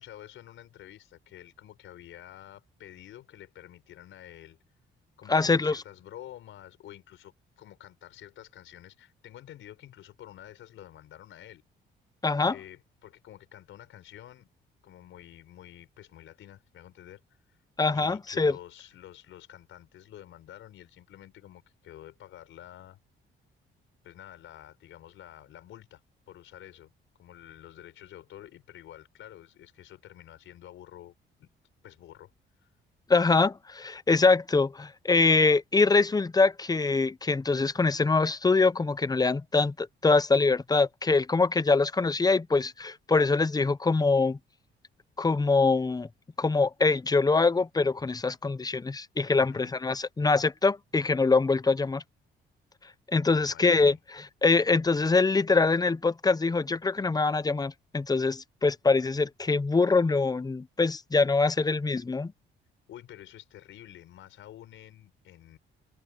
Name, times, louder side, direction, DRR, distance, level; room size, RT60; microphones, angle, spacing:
voice 1, 0.0-4.6 5.2-11.6 12.5-14.5 14.8-17.2 17.5-17.6 17.9-23.0 24.0-26.0 26.3-26.9 27.2-31.1 31.4-31.5 31.8-32.3 32.6-32.7 49.4-49.7 53.2-54.0 62.9-65.6, left 12 dB, 80° left, 5.3 m, -49 dB
voice 2, 5.3-5.8 12.2-12.5 17.8-18.5 33.1-44.4 45.2-46.1 46.4-52.0 53.1-54.0 54.4-62.3, left 3 dB, 20° left, 0.8 m, -24 dB
cardioid pair, 90°, 20 cm